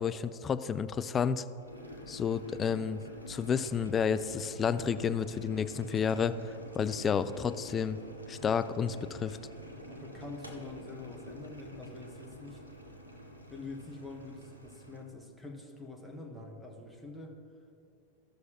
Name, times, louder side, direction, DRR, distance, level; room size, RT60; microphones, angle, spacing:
voice 1, 0.0-1.4 2.1-3.0 3.3-6.4 6.7-8.0 8.3-9.4, left 7 dB, 20° left, 12 dB, 0.3 m, -30 dB
Boiling, 1.6-15.1, left 1 dB, 80° right, 1.0 m, -48 dB
voice 2, 9.9-12.6 13.5-17.4, left 2 dB, ahead, -2 dB, 1.2 m, -45 dB
16.0 x 6.3 x 2.9 m, 2.6 s
figure-of-eight pair, 90°, 0 cm